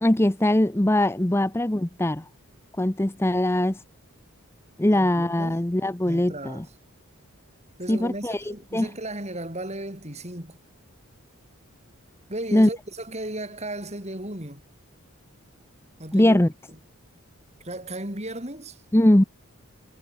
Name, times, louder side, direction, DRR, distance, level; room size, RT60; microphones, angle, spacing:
voice 1, 0.0-2.2 2.8-3.8 4.8-6.6 7.9-8.9 12.5-12.7 16.1-16.5 18.9-19.2, left 1 dB, 10° left, 0.6 m, -21 dB
voice 2, 4.9-5.6 6.1-6.7 7.8-10.6 12.3-14.6 16.0-16.4 17.6-18.8, right 1 dB, 30° right, 5.4 m, -35 dB
head